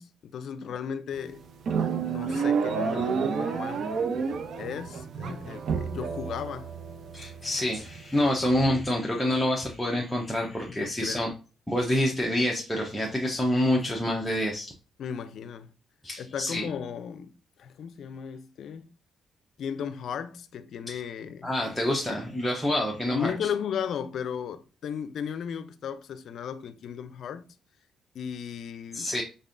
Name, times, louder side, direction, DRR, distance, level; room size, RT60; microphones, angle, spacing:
voice 1, 0.0-1.4 2.1-3.9 4.6-6.7 10.5-11.3 15.0-15.7 16.2-18.9 19.6-21.5 23.1-27.5 28.1-29.1, left 7 dB, 65° left, 0.4 m, -35 dB
sound 1, 1.1-8.3, right 6 dB, 60° right, 0.5 m, -30 dB
voice 2, 7.1-11.3 11.7-14.7 16.0-16.7 20.9-21.0 21.4-23.3 28.9-29.2, left 1 dB, 5° left, 0.8 m, -27 dB
4.0 x 3.6 x 2.5 m
cardioid pair, 90°, 0 cm